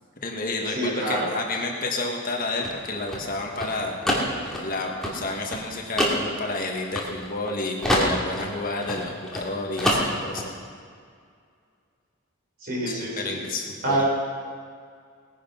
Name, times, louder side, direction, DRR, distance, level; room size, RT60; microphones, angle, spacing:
voice 1, 0.2-4.0 4.4-10.5 12.8-14.0, left 2 dB, 40° left, 1 dB, 1.6 m, -30 dB
voice 2, 0.7-1.3 12.6-13.5 13.8-14.0, right 1 dB, 45° right, -3 dB, 4.6 m, -26 dB
sound 1, 2.2-7.5 7.8-9.5 9.8-10.5, equal, ahead, 2.4 m, -27 dB
19.0 x 10.0 x 5.7 m, 2.1 s
head